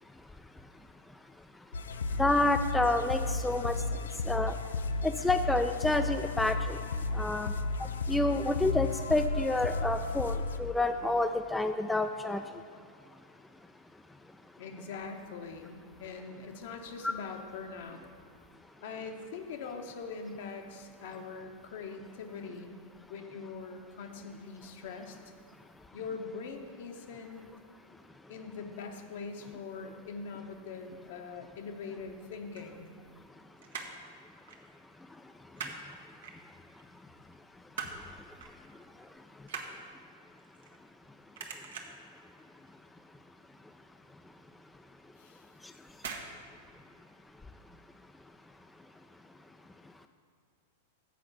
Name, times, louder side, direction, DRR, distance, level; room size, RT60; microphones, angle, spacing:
sound 1, 1.7-10.6, left 3 dB, 90° left, 0.4 m, -33 dB
voice 1, 2.2-3.8 4.3-4.5 5.0-6.8 7.1-7.5 8.1-12.4 17.0-17.1, left 2 dB, 5° left, 7 dB, 0.3 m, -28 dB
voice 2, 14.6-18.0 18.8-22.7 23.1-25.2 25.9-27.5 28.3-32.9 45.2-45.5, left 4 dB, 65° left, 4 dB, 1.0 m, -42 dB
sound 2, 32.5-33.3 33.6-34.1 34.5-34.7 35.0-35.8 36.2-36.8 37.2-38.1 38.4-38.6 38.9-41.1 41.3-42.1 42.5-42.9 43.1-43.2 43.6-43.7 44.1-44.2 45.1-45.4 46.0-46.3 46.6-46.7, right 6 dB, 75° right, 1.0 m, -42 dB
7.7 x 4.6 x 6.7 m, 2.2 s
hypercardioid pair, 115°, 0 cm